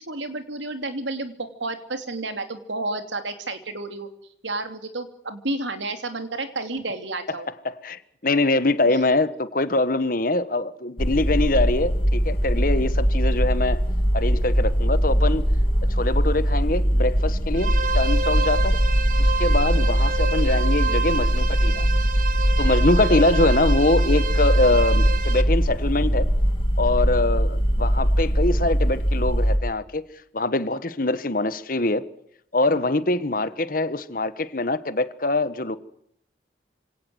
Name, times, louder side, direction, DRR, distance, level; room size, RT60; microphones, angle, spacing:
voice 1, 0.1-4.1 4.4-7.5, right 2 dB, 85° right, 2.9 m, -31 dB
voice 2, 7.6-13.8 14.1-15.4 15.9-18.8 19.2-21.9 22.6-26.3 26.8-30.0 30.3-32.0 32.5-35.8, left 2 dB, 50° left, 1.3 m, -23 dB
sound 1, 11.0-29.6, equal, 30° left, 2.5 m, -21 dB
sound 2, 17.5-25.4, right 4 dB, 45° right, 1.6 m, -29 dB
26.0 x 18.0 x 7.9 m
head